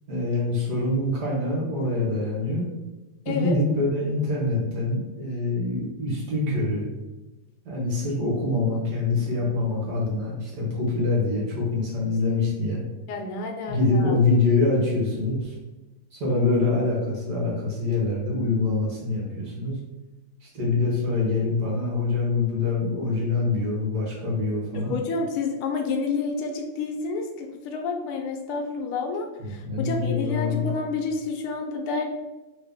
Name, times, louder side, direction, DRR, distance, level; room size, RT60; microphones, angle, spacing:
voice 1, 0.1-2.7 3.2-6.9 7.6-12.8 13.7-15.5 16.1-19.8 20.4-25.0 29.4-30.7, left 3 dB, 55° right, -4 dB, 1.5 m, -25 dB
voice 2, 13.1-14.1 24.7-32.0, left 4 dB, 90° left, 3 dB, 1.5 m, -29 dB
3.7 x 2.7 x 3.5 m, 1.1 s
omnidirectional pair, 2.4 m